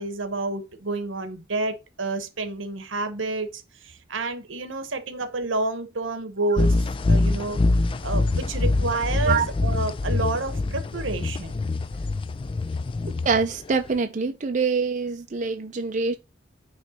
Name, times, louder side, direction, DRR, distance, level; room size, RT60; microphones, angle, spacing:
voice 1, 0.0-6.8 7.1-7.6 8.0-11.6, right 3 dB, 85° right, 1.0 m, -29 dB
sound 1, 6.6-14.0, left 2 dB, 30° left, 0.3 m, -24 dB
voice 2, 13.2-16.2, right 5 dB, 40° right, 0.5 m, -25 dB
9.1 x 3.2 x 4.2 m
head